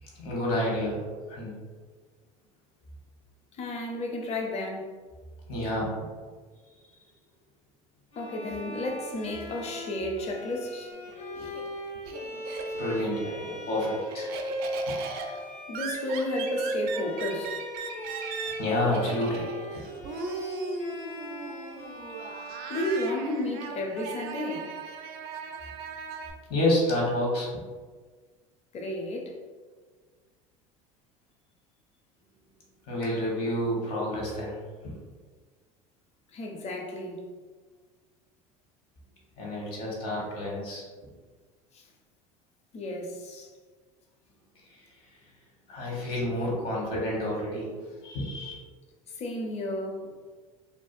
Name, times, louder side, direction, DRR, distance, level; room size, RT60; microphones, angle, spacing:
voice 1, 0.0-1.0 1.3-1.5 5.5-6.1 12.8-14.3 14.9-15.0 18.6-19.5 26.5-27.5 32.9-34.6 34.8-34.9 39.4-40.8 44.7-44.8 45.7-47.7 48.0-48.5, left 1 dB, 60° left, 1.1 m, -29 dB
voice 2, 3.6-4.9 8.2-10.9 15.7-17.6 22.7-24.7 28.7-29.4 36.3-37.2 41.7-41.9 42.7-43.5 49.2-50.1, left 1 dB, 35° left, 0.5 m, -32 dB
Bowed string instrument, 8.1-23.9, equal, 75° left, 0.7 m, -38 dB
Laughter, 10.9-13.0 13.4-26.3, right 5 dB, 60° right, 0.4 m, -38 dB
2.6 x 2.4 x 2.4 m
hypercardioid pair, 80°, 18 cm